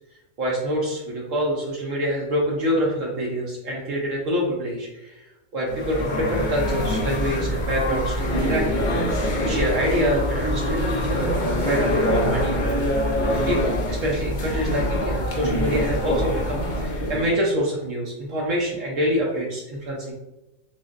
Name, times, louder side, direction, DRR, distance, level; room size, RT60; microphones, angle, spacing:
voice 1, 0.4-5.2 5.5-8.6 9.2-11.3 11.7-12.5 13.2-20.1, equal, 65° right, -3 dB, 1.0 m, -26 dB
sound 1, 5.7-17.3, left 1 dB, 50° left, 0.5 m, -24 dB
5.7 x 2.0 x 2.4 m, 0.99 s
omnidirectional pair, 1.5 m